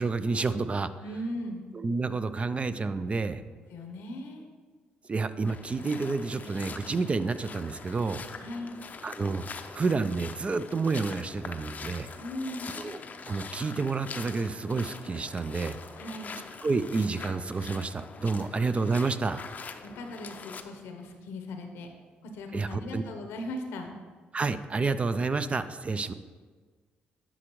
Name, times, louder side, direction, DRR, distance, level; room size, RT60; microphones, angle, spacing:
voice 1, 0.0-0.9 1.7-3.4 5.1-8.2 9.0-9.4 9.7-12.1 12.8-13.0 13.3-15.8 16.6-19.4 22.5-23.0 24.3-26.1, right 4 dB, 30° right, 12 dB, 0.4 m, -29 dB
voice 2, 1.0-1.6 3.7-4.5 8.4-8.7 12.2-12.7 16.0-16.4 18.4-18.5 19.8-21.9 22.3-23.9, left 1 dB, 85° left, 4 dB, 0.8 m, -38 dB
sound 1, 5.4-20.6, left 5 dB, 45° left, 0.5 m, -43 dB
9.8 x 5.0 x 3.0 m, 1.4 s
supercardioid pair, 70°, 4 cm